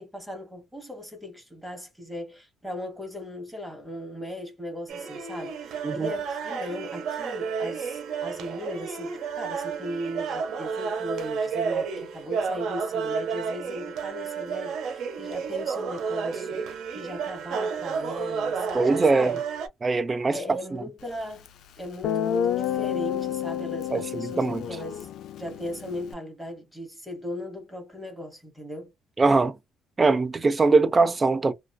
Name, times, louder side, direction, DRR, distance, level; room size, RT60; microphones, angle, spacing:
voice 1, 0.0-19.4 20.3-21.5 21.7-25.1 25.4-28.9, left 1 dB, 5° right, 1.2 m, -38 dB
sound 1, 4.9-19.7, right 6 dB, 70° right, 0.7 m, -31 dB
voice 2, 18.7-19.3 19.8-20.4 23.9-24.6 29.2-29.6 30.0-31.5, right 3 dB, 20° right, 0.4 m, -21 dB
Guitar, 21.5-21.6 22.0-26.1, left 9 dB, 70° left, 0.4 m, -30 dB
2.4 x 2.4 x 2.2 m
cardioid pair, 135°, 0 cm